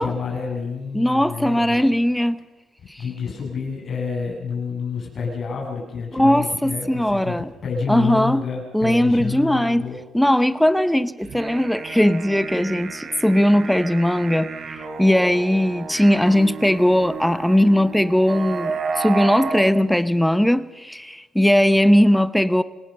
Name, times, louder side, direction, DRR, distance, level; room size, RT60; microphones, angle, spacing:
voice 1, 0.0-1.8 3.0-10.0, left 5 dB, 50° left, -1 dB, 7.7 m, -29 dB
voice 2, 0.9-2.4 2.9-3.0 6.1-7.5 7.9-8.4 8.7-9.8 10.1-22.6, equal, 5° left, 14 dB, 0.9 m, -19 dB
sound 1, 11.2-19.7, right 5 dB, 50° right, 3.6 m, -32 dB
27.0 x 17.5 x 6.8 m, 1.1 s
cardioid pair, 90°, 0 cm